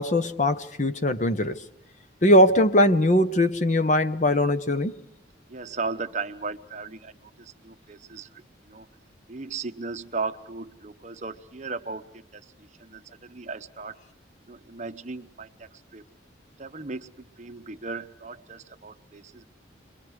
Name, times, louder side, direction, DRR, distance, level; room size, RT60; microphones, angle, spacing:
voice 1, 0.0-1.6 2.2-4.9, left 1 dB, 40° left, 0.9 m, -21 dB
voice 2, 5.5-8.9 9.3-14.0 14.5-16.0 16.6-19.4, right 4 dB, 40° right, 0.9 m, -37 dB
30.0 x 22.5 x 4.9 m
head